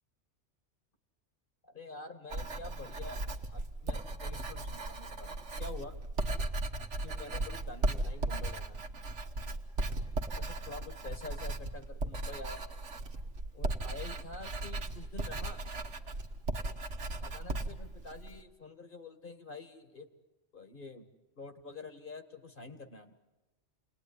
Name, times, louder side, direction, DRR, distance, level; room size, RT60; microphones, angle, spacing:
voice 1, 1.6-3.2 3.5-5.9 7.0-8.9 10.3-12.6 13.5-15.6 17.2-20.1 20.5-21.0 21.4-23.2, left 3 dB, 45° left, 7 dB, 2.1 m, -47 dB
Writing, 2.3-18.4, right 2 dB, 80° right, 1.7 m, -37 dB
29.0 x 20.5 x 9.9 m, 1.1 s
omnidirectional pair, 1.2 m